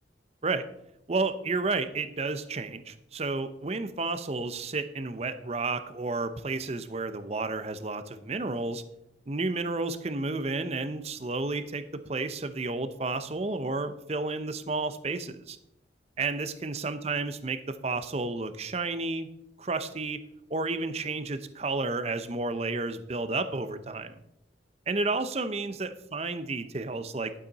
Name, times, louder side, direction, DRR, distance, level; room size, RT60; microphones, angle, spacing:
voice 1, 1.1-8.8 9.3-15.6 16.2-19.3 19.6-20.2 20.5-24.2 24.9-27.3, right 3 dB, 35° right, 10 dB, 0.6 m, -31 dB
11.5 x 7.4 x 4.0 m, 0.83 s
head